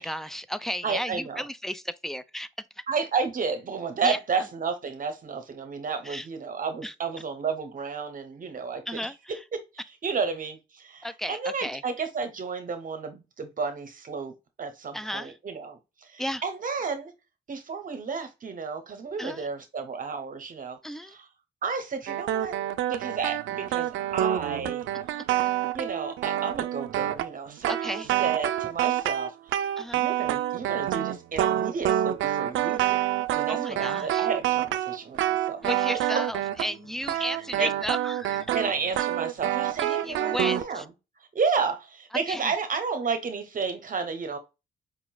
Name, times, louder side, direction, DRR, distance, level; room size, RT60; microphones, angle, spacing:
voice 1, 0.0-2.5 4.0-4.2 6.0-6.3 6.8-6.9 8.9-9.2 11.0-11.8 14.9-15.4 16.2-16.4 19.2-19.5 20.8-21.1 27.7-28.1 29.8-30.0 33.5-34.3 35.6-38.5 39.9-40.8 42.3-42.5, equal, ahead, 0.4 m, -34 dB
voice 2, 0.8-1.4 2.9-8.8 9.3-9.6 10.0-17.1 17.5-21.3 21.6-22.5 22.9-24.8 25.7-29.3 29.9-35.6 37.2-37.3 37.6-37.7 38.5-40.9 41.3-44.4, right 5 dB, 45° right, 0.9 m, -32 dB
sound 1, 22.1-36.8 37.0-40.6, right 12 dB, 80° right, 0.4 m, -27 dB
5.0 x 2.9 x 2.2 m
cardioid pair, 90°, 20 cm